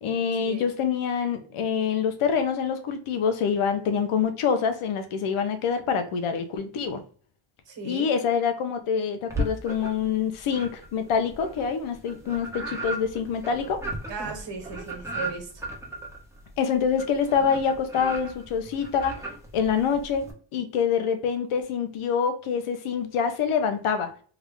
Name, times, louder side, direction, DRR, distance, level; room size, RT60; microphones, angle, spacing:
voice 1, 0.0-7.0 7.8-13.8 16.6-19.1 19.5-20.2 20.5-24.1, left 6 dB, 80° left, 0.9 m, -26 dB
voice 2, 7.7-8.1 14.1-15.7, right 4 dB, 60° right, 1.5 m, -36 dB
sound 1, 9.3-10.1 10.5-20.3, right 1 dB, 5° right, 1.1 m, -36 dB
3.4 x 2.4 x 3.5 m
cardioid pair, 95°, 49 cm